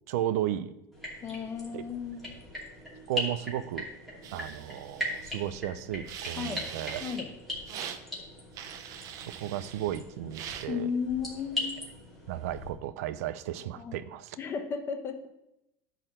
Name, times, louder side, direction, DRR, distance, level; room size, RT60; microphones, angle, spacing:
voice 1, 0.1-0.7 1.7-1.9 3.1-3.9 4.3-7.0 9.2-10.9 12.3-14.4, right 12 dB, 85° right, 13 dB, 0.5 m, -34 dB
sound 1, 0.9-12.7, left 1 dB, ahead, 2.6 m, -40 dB
voice 2, 1.2-2.3 6.3-6.7 7.0-7.3 10.7-11.9 13.8-14.0 14.4-15.3, left 6 dB, 30° left, 6 dB, 1.0 m, -34 dB
sound 2, 4.2-5.5 6.1-7.2 7.7-8.0 8.5-10.0 10.3-10.7, right 9 dB, 45° right, 0.7 m, -42 dB
11.0 x 4.0 x 6.6 m, 0.88 s
supercardioid pair, 145°, 8 cm